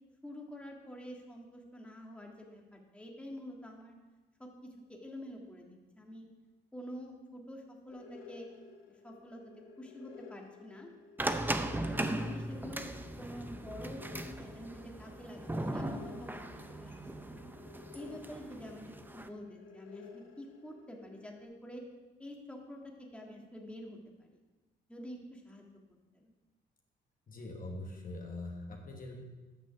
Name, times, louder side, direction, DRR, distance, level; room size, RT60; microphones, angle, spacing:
voice 1, 0.2-3.9 4.4-6.3 6.7-8.5 8.9-10.9 11.8-17.5 17.9-21.8 22.2-24.4 24.9-25.7 26.2-26.3, equal, 5° left, 0 dB, 1.8 m, -47 dB
sound 1, 7.9-21.4, left 6 dB, 85° left, 1.1 m, -54 dB
sound 2, 11.2-19.3, right 1 dB, 10° right, 0.7 m, -38 dB
voice 2, 27.3-29.2, left 2 dB, 45° left, 1 dB, 1.5 m, -43 dB
9.2 x 6.0 x 6.9 m, 1.2 s
cardioid pair, 90°, 20 cm